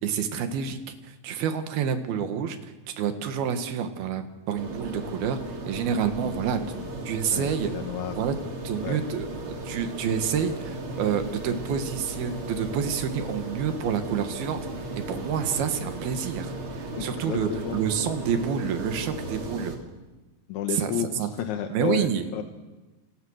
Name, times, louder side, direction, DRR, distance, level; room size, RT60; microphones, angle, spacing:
voice 1, 0.0-5.4 5.7-6.6 7.1-7.7 8.2-8.4 8.6-14.6 14.9-19.8 20.7-21.3 21.7-22.3, right 7 dB, 70° right, 8 dB, 3.4 m, -28 dB
sound 1, 4.6-19.8, right 2 dB, 35° right, 3.2 m, -36 dB
voice 2, 7.3-8.2 8.8-9.0 17.0-17.8 20.5-22.1 22.3-22.4, left 10 dB, 65° left, 6 dB, 2.1 m, -31 dB
29.0 x 26.5 x 6.5 m, 1.2 s
omnidirectional pair, 4.8 m